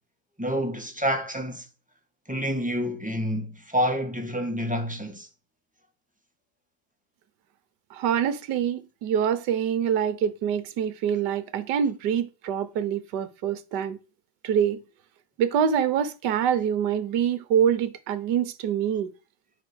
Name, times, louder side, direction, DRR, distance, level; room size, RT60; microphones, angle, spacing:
voice 1, 0.4-1.6 2.3-5.3, equal, 5° right, 1.6 m, -28 dB
voice 2, 7.9-14.0 14.4-14.8 15.4-19.1, right 8 dB, 65° right, 1.5 m, -25 dB
9.7 x 5.3 x 6.4 m
omnidirectional pair, 2.1 m